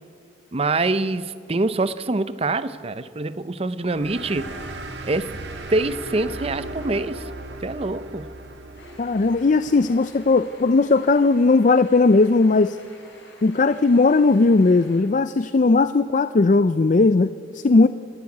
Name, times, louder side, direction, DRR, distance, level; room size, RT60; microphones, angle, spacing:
voice 1, 0.5-4.5 5.0-5.3 5.7-7.3 7.6-8.3, right 2 dB, 30° right, 14 dB, 0.6 m, -25 dB
sound 1, 3.9-11.0, right 1 dB, 65° right, 1.9 m, -37 dB
sound 2, 8.7-15.0, left 2 dB, 70° left, 6.2 m, -49 dB
voice 2, 9.0-12.8 13.4-17.9, left 3 dB, 40° left, 13 dB, 0.4 m, -17 dB
28.5 x 12.5 x 8.4 m, 2.4 s
head